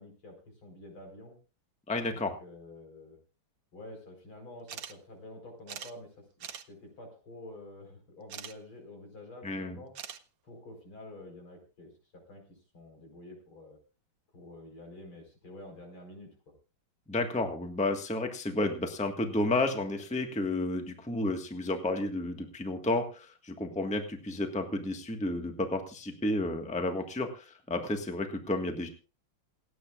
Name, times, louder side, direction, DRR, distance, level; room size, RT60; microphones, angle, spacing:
voice 1, 0.0-1.3 2.0-3.2 3.7-6.3 6.7-9.9 10.4-13.8 14.3-16.5, left 1 dB, 75° left, 3 dB, 5.5 m, -49 dB
voice 2, 1.9-2.3 9.4-9.8 17.1-28.9, left 2 dB, 5° left, 5 dB, 1.3 m, -31 dB
sound 1, 4.7-4.9 5.2-5.3 5.7-5.9 6.4-6.6 8.3-8.5 9.9-10.2, right 8 dB, 55° right, 1.1 m, -42 dB
28.0 x 9.4 x 2.5 m, 0.33 s
omnidirectional pair, 2.3 m